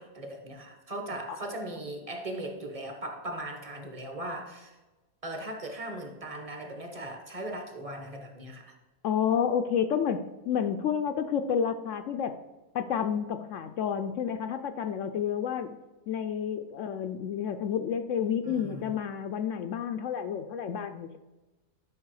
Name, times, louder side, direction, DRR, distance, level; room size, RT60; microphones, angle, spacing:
voice 1, 0.0-4.8 5.2-8.8 18.4-18.9, right 1 dB, 25° right, 4 dB, 1.1 m, -38 dB
voice 2, 9.0-12.4 12.7-15.7 16.1-21.2, left 8 dB, 70° left, 8 dB, 0.8 m, -30 dB
11.0 x 5.6 x 4.7 m, 1.1 s
omnidirectional pair, 1.7 m